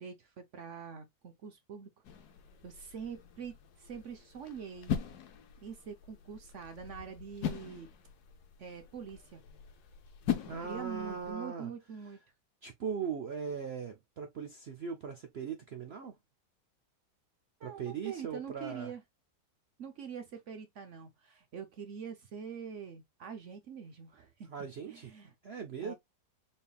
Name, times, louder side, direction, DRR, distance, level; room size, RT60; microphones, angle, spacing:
voice 1, 0.0-1.9 2.6-5.0 5.6-7.9 8.6-9.4 10.6-12.2 17.6-19.0 19.8-25.3 25.8-25.9, right 7 dB, 60° right, 0.8 m, -45 dB
Swishes Svihy, 2.0-11.3, left 8 dB, 70° left, 1.2 m, -41 dB
voice 2, 10.5-11.7 12.6-16.2 17.6-18.9 24.5-25.1 25.4-25.9, right 6 dB, 85° right, 0.5 m, -39 dB
4.3 x 3.5 x 2.3 m
omnidirectional pair, 1.9 m